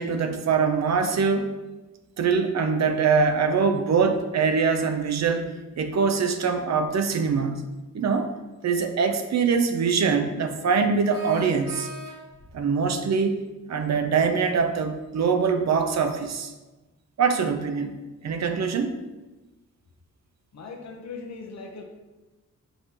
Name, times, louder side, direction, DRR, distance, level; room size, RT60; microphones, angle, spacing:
voice 1, 0.0-1.5 2.2-7.6 7.9-8.3 8.6-11.9 12.5-13.4 13.7-16.5 17.2-18.0 18.2-19.0, right 5 dB, 60° right, 7 dB, 0.6 m, -23 dB
sound 1, 11.1-12.5, equal, 30° left, 1.4 m, -41 dB
voice 2, 20.5-21.8, left 4 dB, 60° left, 2 dB, 1.0 m, -39 dB
6.3 x 5.4 x 2.9 m, 1.1 s
wide cardioid pair, 145°, 30 cm